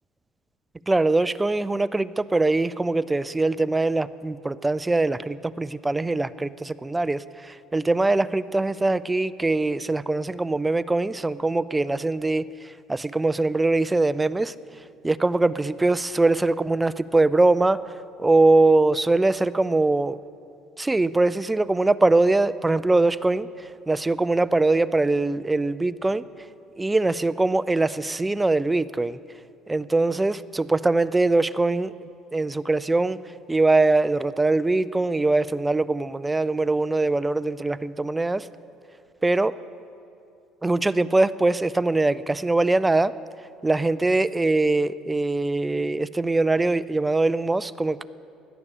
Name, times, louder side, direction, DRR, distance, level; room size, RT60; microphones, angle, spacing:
voice 1, 0.9-14.5 15.0-17.8 18.2-20.2 20.8-26.2 26.8-29.2 29.7-31.9 32.3-33.2 33.5-38.5 39.2-39.5 40.6-43.1 43.6-48.0, right 2 dB, 10° right, 16 dB, 0.4 m, -22 dB
17.0 x 11.0 x 6.7 m, 2.5 s
cardioid pair, 130°, 0 cm